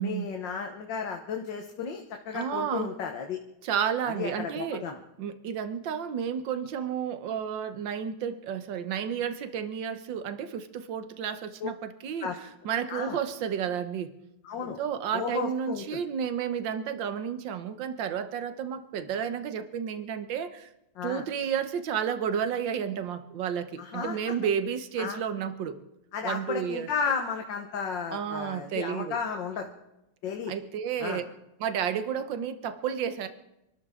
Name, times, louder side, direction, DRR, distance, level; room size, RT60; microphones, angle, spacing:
voice 1, 0.0-3.4 4.1-5.0 11.6-11.7 12.2-12.4 12.9-13.2 14.4-14.8 15.1-16.0 21.0-21.3 23.8-24.2 25.0-25.2 26.1-29.7 30.2-30.5 31.0-31.2, left 6 dB, 75° left, 4 dB, 1.8 m, -33 dB
voice 2, 2.3-2.9 3.6-4.9 5.2-12.3 12.6-14.1 14.8-20.7 21.0-25.8 26.2-26.9 28.1-29.2 30.5-31.2 31.6-33.3, right 8 dB, 80° right, 10 dB, 1.7 m, -31 dB
26.5 x 13.0 x 3.7 m, 0.88 s
omnidirectional pair, 2.0 m